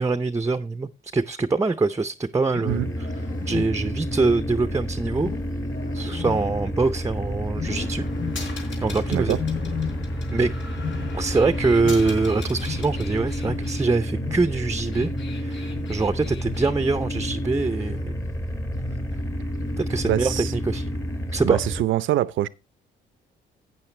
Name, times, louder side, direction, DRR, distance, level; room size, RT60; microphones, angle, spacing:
voice 1, 0.0-2.8 3.5-5.3 5.9-8.1 8.5-9.4 10.3-10.5 11.1-18.1 19.8-20.9 21.3-21.6, right 3 dB, 15° right, 0.6 m, -24 dB
Wild animals, 2.4-4.1 5.2-7.1 7.5-8.7 9.3-10.4 10.6-13.2 13.4-18.3 18.7-19.1 19.6-20.0 20.7-21.2, left 8 dB, 40° left, 0.8 m, -36 dB
sound 1, 2.7-21.8, equal, 15° left, 1.0 m, -30 dB
sound 2, 7.7-13.8 14.7-16.7, left 4 dB, 70° left, 3.8 m, -42 dB
voice 2, 20.1-20.5 21.4-22.5, right 13 dB, 80° right, 0.6 m, -24 dB
12.0 x 8.7 x 3.3 m
cardioid pair, 90°, 20 cm